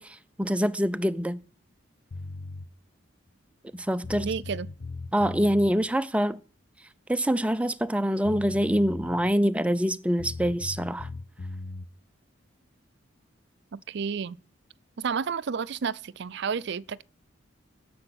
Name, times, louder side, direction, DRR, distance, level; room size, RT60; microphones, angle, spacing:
voice 1, 0.0-1.4 3.7-4.3 5.1-6.4 7.1-11.1, equal, 5° right, 0.5 m, -25 dB
sound 1, 2.1-2.7 3.7-3.8 4.0-5.7 7.9-8.0 8.2-9.4 10.2-11.9, left 3 dB, 70° left, 0.8 m, -38 dB
voice 2, 4.2-4.7 13.7-14.4 15.0-17.0, right 6 dB, 60° right, 0.5 m, -31 dB
9.9 x 7.7 x 8.0 m
head